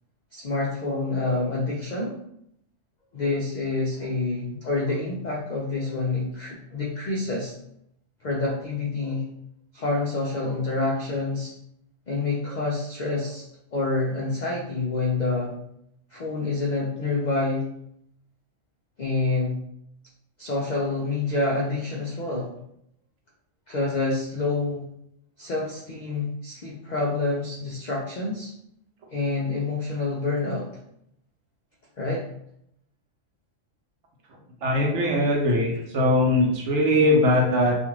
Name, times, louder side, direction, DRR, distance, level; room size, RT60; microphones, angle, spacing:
voice 1, 0.3-2.2 3.1-7.5 8.2-9.2 9.7-11.5 12.1-13.4 13.7-15.5 16.1-17.7 19.0-19.6 20.4-22.5 23.7-24.8 25.4-28.5 29.1-30.8 32.0-32.2, left 3 dB, 75° left, -3 dB, 0.4 m, -27 dB
voice 2, 34.6-37.8, left 1 dB, 65° right, 0 dB, 0.9 m, -21 dB
2.5 x 2.4 x 3.0 m, 0.75 s
omnidirectional pair, 1.3 m